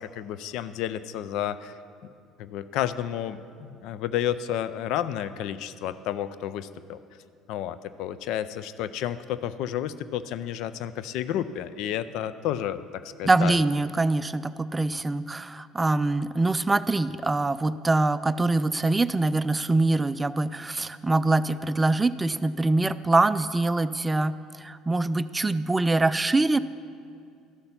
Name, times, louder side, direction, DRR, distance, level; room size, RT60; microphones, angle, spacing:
voice 1, 0.0-1.7 2.4-7.0 7.5-13.6, left 10 dB, 70° left, 14 dB, 0.4 m, -31 dB
voice 2, 13.2-26.6, right 2 dB, 20° right, 15 dB, 0.3 m, -24 dB
13.0 x 6.7 x 5.8 m, 2.4 s
hypercardioid pair, 75°, 0 cm